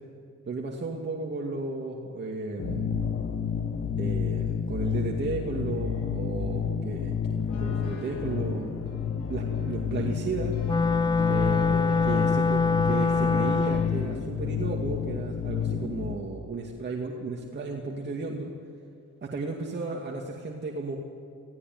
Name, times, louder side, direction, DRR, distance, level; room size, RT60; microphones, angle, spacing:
voice 1, 0.5-3.1 4.0-8.7 9.3-10.5 11.3-18.5 19.2-21.0, right 3 dB, 35° right, -1 dB, 2.5 m, -34 dB
sound 1, 2.6-16.2, left 7 dB, 45° left, 1.8 m, -30 dB
sound 2, 7.5-14.1, left 1 dB, 70° left, 6.1 m, -43 dB
Wind instrument woodwind instrument, 10.6-14.0, left 5 dB, 15° left, 0.5 m, -24 dB
19.0 x 16.5 x 9.6 m, 2.4 s
cardioid pair, 90°, 30 cm